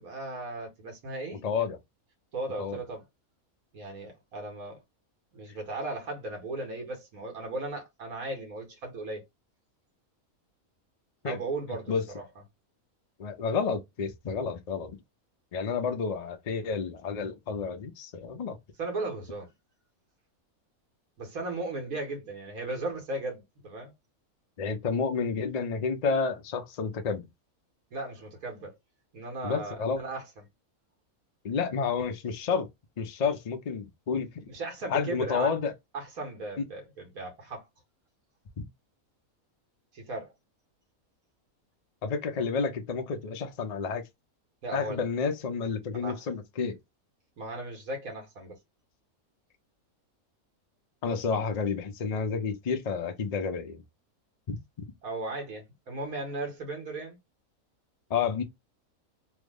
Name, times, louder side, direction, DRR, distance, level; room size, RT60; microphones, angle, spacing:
voice 1, 0.0-1.7 2.3-3.0 3.7-4.8 5.3-9.2 11.2-12.2 18.8-19.5 21.2-23.9 27.9-28.7 29.1-30.4 34.5-35.6 35.9-37.7 39.9-40.3 44.6-45.0 45.9-46.2 47.4-48.6 55.0-57.2, right 2 dB, 75° right, 1.8 m, -36 dB
voice 2, 1.4-1.8 2.6-2.8 11.2-11.4 11.9-12.0 13.2-15.0 15.5-18.6 24.6-27.3 29.4-30.0 31.4-32.7 33.0-34.5 34.9-35.7 36.6-36.7 38.6-38.7 42.0-44.0 44.7-46.8 51.0-53.8 54.5-54.6 58.1-58.4, left 5 dB, 65° left, 0.3 m, -30 dB
3.4 x 2.0 x 3.5 m
omnidirectional pair, 1.5 m